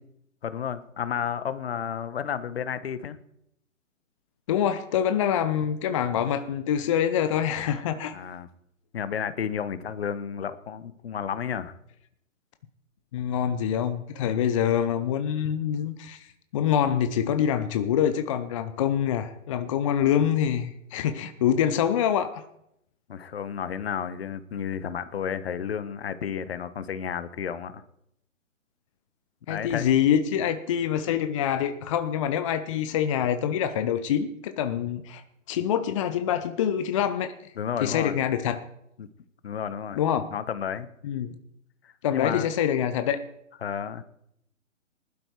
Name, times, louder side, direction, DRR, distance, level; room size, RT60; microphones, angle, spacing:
voice 1, 0.4-3.2 8.1-8.5 8.9-11.7 23.1-27.8 29.5-29.9 37.6-38.1 39.0-39.1 39.4-40.0 40.3-40.9 41.8-42.5 43.6-44.0, left 8 dB, 50° left, 14 dB, 1.2 m, -32 dB
voice 2, 4.5-8.1 13.1-16.3 16.5-22.4 29.5-35.2 35.5-37.5 37.8-38.6 39.9-40.3 41.0-41.4 42.0-43.2, left 9 dB, 25° left, 10 dB, 0.7 m, -25 dB
19.5 x 12.0 x 4.6 m, 0.78 s
figure-of-eight pair, 130°, 39 cm